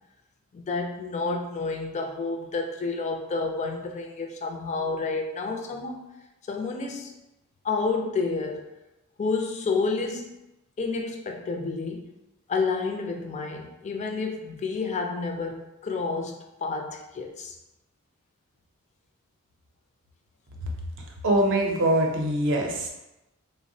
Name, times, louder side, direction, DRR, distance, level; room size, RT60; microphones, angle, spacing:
voice 1, 0.5-6.1 6.5-7.1 7.6-8.6 9.2-10.4 10.8-12.2 12.5-16.4 16.6-17.6, left 4 dB, 35° left, 3 dB, 0.3 m, -30 dB
voice 2, 21.2-22.9, right 1 dB, 60° right, 0 dB, 0.5 m, -23 dB
3.3 x 2.0 x 2.6 m, 0.94 s
head